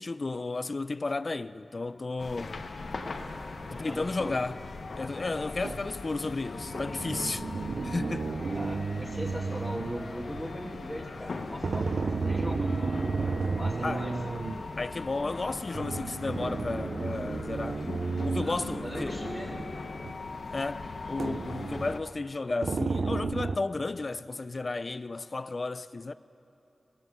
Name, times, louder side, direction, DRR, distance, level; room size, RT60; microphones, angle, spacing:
voice 1, 0.0-2.6 3.7-4.6 5.0-7.4 7.8-8.3 13.8-14.1 14.8-17.8 18.2-19.2 20.5-26.1, left 3 dB, 45° left, 0.3 m, -33 dB
sound 1, 2.2-22.0, left 3 dB, 70° left, 0.9 m, -39 dB
voice 2, 3.7-4.4 8.5-14.1 18.4-18.6 18.8-19.5, equal, ahead, 1.4 m, -39 dB
sound 2, 5.6-5.9 6.6-10.5 11.6-14.7 15.7-19.7 20.0-20.1 21.2-22.0 22.6-23.6, right 4 dB, 70° right, 0.4 m, -33 dB
20.0 x 9.4 x 6.9 m
wide cardioid pair, 90°, 0 cm